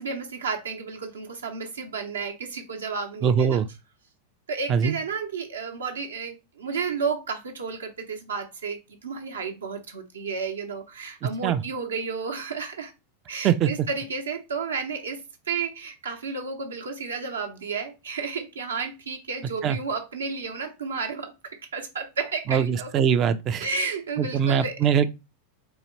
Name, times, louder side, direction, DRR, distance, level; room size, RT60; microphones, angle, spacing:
voice 1, 0.0-3.6 4.5-12.9 13.3-22.9 23.6-24.9, right 5 dB, 70° right, 0.8 m, -32 dB
voice 2, 3.2-3.7 4.7-4.9 11.4-11.6 13.4-13.7 19.6-19.8 22.5-23.7 24.2-25.1, right 8 dB, 30° right, 0.4 m, -22 dB
4.0 x 2.7 x 3.0 m
figure-of-eight pair, 90°, 0 cm